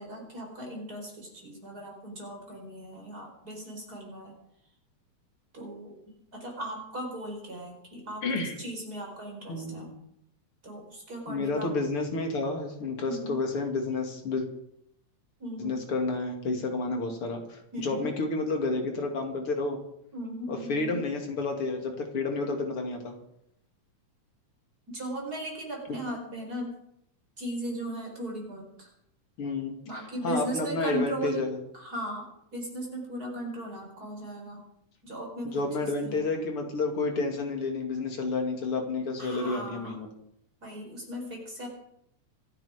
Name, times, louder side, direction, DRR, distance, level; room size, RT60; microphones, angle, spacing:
voice 1, 0.0-4.4 5.5-8.2 8.6-9.9 10.6-11.7 13.0-13.4 15.4-15.8 17.7-18.1 20.1-21.0 24.9-26.8 27.4-28.9 29.9-31.4 31.7-32.3 32.5-34.6 35.0-36.3 39.2-40.0 40.6-41.7, right 1 dB, 30° right, 0 dB, 5.1 m, -37 dB
voice 2, 8.2-8.6 9.5-9.9 11.3-14.4 15.6-19.8 20.5-23.1 29.4-29.8 30.2-31.6 35.4-40.1, left 3 dB, 45° left, 3 dB, 3.2 m, -30 dB
26.0 x 9.5 x 5.1 m, 0.76 s
omnidirectional pair, 3.5 m